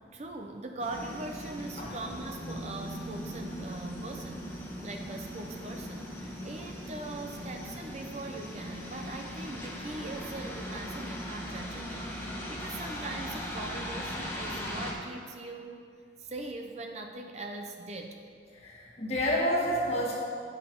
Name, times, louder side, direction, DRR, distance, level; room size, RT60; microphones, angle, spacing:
voice 1, 0.1-15.8 16.2-18.3, right 2 dB, 40° right, 3 dB, 0.5 m, -41 dB
sound 1, 0.8-14.9, left 1 dB, 15° left, 1.0 m, -39 dB
sound 2, 2.4-11.4, right 2 dB, 20° right, 1.8 m, -48 dB
voice 2, 18.6-20.1, equal, 35° left, -4 dB, 1.5 m, -29 dB
9.1 x 5.6 x 4.4 m, 2.2 s
head